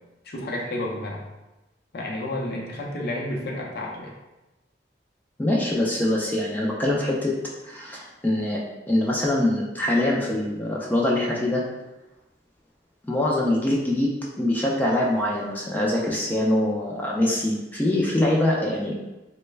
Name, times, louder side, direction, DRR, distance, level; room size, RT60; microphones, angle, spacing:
voice 1, 0.2-1.2 1.9-4.2, left 1 dB, 60° left, -2 dB, 0.6 m, -31 dB
voice 2, 5.4-7.3 7.6-8.6 8.9-11.6 13.1-18.9, left 1 dB, 10° left, -3 dB, 0.4 m, -24 dB
3.2 x 2.1 x 3.2 m, 1.0 s
head